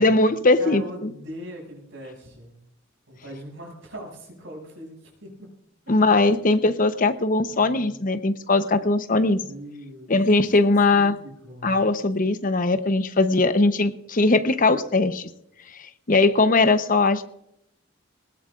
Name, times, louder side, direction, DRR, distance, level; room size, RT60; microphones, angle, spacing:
voice 1, 0.0-1.1 5.9-9.4 10.1-11.2 11.6-15.3 16.1-17.2, left 3 dB, 45° left, 10 dB, 0.9 m, -20 dB
voice 2, 0.6-2.6 3.1-5.5 6.5-6.6 7.5-7.9 9.1-10.1 10.9-11.8, equal, 75° right, 0 dB, 6.9 m, -40 dB
20.0 x 19.0 x 2.5 m, 0.78 s
head